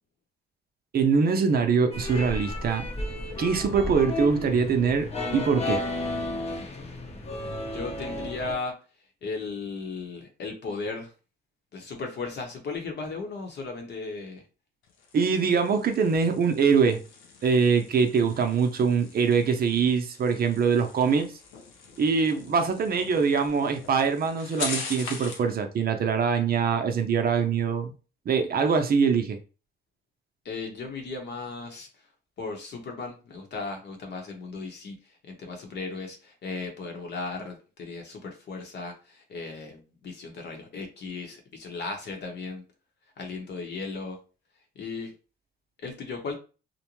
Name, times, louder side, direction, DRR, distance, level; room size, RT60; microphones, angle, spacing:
voice 1, 0.9-2.9 3.4-5.1 5.3-5.8 15.1-17.0 17.4-21.3 22.0-27.9 28.3-29.4, right 5 dB, 50° right, 0.5 m, -23 dB
sound 1, 1.9-8.5, left 1 dB, 30° left, 0.7 m, -33 dB
voice 2, 7.7-8.8 9.2-11.1 11.7-14.4 30.4-31.9 32.4-34.9 35.3-42.6 43.2-44.2 44.7-45.1 45.8-46.3, left 3 dB, 60° left, 0.9 m, -36 dB
sound 2, 14.8-25.5, left 4 dB, 90° left, 0.7 m, -42 dB
2.6 x 2.1 x 3.0 m
cardioid pair, 90°, 20 cm